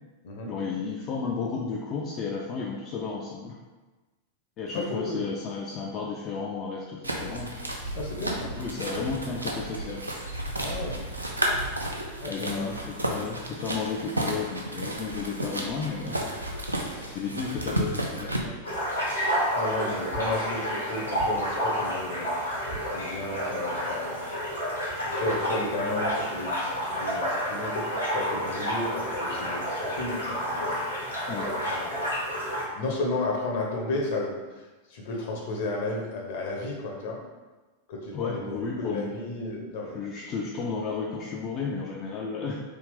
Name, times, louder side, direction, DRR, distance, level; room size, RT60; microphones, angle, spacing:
voice 1, 0.5-3.6 4.6-7.5 8.6-10.0 12.3-16.2 17.1-18.3 31.3-31.5 38.1-39.1 39.9-42.6, left 5 dB, 35° left, -2 dB, 0.4 m, -33 dB
sound 1, 7.0-18.4, right 1 dB, 85° right, 0.4 m, -32 dB
voice 2, 7.9-8.5 10.6-11.0 12.2-12.7 16.8-17.2 18.4-18.5 19.1-22.3 22.9-24.3 25.0-27.8 28.1-30.8 31.4-32.2 32.7-34.4 34.9-37.2 37.9-38.6 38.9-40.0, left 2 dB, 55° left, -1 dB, 0.8 m, -33 dB
sound 2, 18.6-32.6, equal, 85° left, 1.2 m, -30 dB
3.3 x 2.4 x 3.5 m, 1.2 s
figure-of-eight pair, 90°, 0 cm